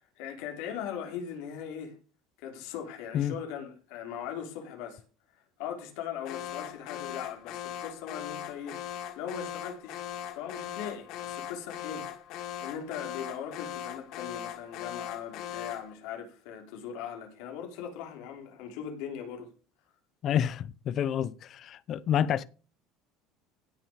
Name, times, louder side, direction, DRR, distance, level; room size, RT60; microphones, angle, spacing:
voice 1, 0.2-2.0 2.4-5.0 5.6-10.0 10.3-12.1 12.6-19.5, left 8 dB, 75° left, 3.3 m, -39 dB
Alarm, 6.3-15.9, left 11 dB, 55° left, 1.5 m, -40 dB
voice 2, 20.2-22.4, left 9 dB, 40° left, 0.7 m, -28 dB
16.0 x 6.0 x 5.1 m
cardioid pair, 150°, 0 cm